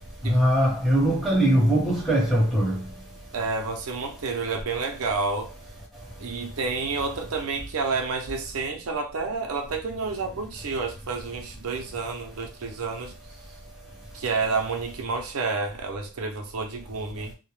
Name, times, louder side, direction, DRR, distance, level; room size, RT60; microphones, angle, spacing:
voice 1, 0.2-2.8, right 1 dB, ahead, 0.8 m, -21 dB
voice 2, 3.3-5.5 6.2-13.1 14.1-17.3, right 4 dB, 90° right, 0.5 m, -29 dB
2.1 x 2.1 x 3.0 m
head